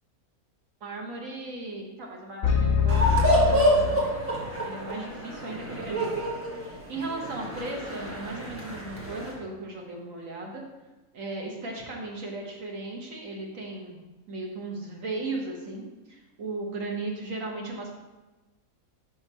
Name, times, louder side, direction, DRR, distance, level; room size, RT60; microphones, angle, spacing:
voice 1, 0.8-4.0 4.6-6.1 6.5-10.6 11.1-14.0 14.3-18.0, right 2 dB, 70° right, 0 dB, 1.4 m, -36 dB
sound 1, 2.4-4.5, left 7 dB, 50° left, 0.6 m, -25 dB
sound 2, 2.9-9.3, right 1 dB, 10° right, 1.1 m, -27 dB
5.5 x 3.6 x 5.4 m, 1.1 s
omnidirectional pair, 1.5 m